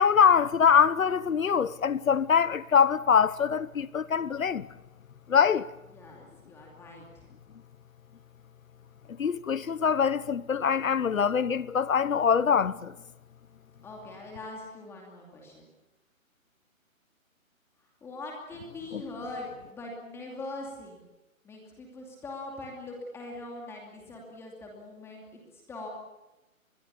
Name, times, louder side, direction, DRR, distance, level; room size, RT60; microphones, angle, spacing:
voice 1, 0.0-4.7 5.3-5.7 9.2-12.9 18.9-19.0, left 7 dB, 70° left, 1.2 m, -23 dB
voice 2, 5.9-7.2 13.8-15.7 18.0-21.0 21.4-25.9, left 2 dB, 5° left, 2.6 m, -42 dB
26.0 x 21.5 x 7.0 m
hypercardioid pair, 165°, 42 cm